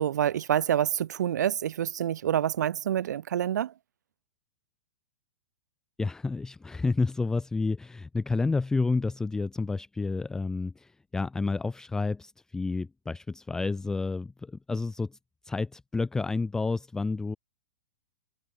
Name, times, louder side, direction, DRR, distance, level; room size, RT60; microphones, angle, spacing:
voice 1, 0.0-3.7, right 10 dB, 85° right, 0.5 m, -27 dB
voice 2, 6.0-15.2 15.4-17.4, left 3 dB, 5° left, 0.7 m, -30 dB
hypercardioid pair, 150°, 9 cm